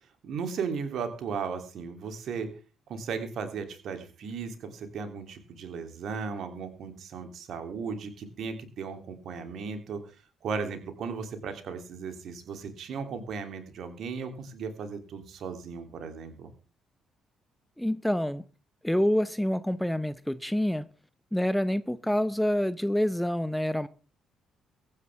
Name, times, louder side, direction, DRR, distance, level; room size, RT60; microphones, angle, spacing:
voice 1, 0.2-2.5 2.9-10.0 10.4-16.5, right 5 dB, 55° right, 7 dB, 3.2 m, -36 dB
voice 2, 17.8-18.4 18.8-20.8 21.3-23.9, equal, 5° left, 15 dB, 0.9 m, -27 dB
23.0 x 9.8 x 3.6 m, 0.35 s
figure-of-eight pair, 45°, 0 cm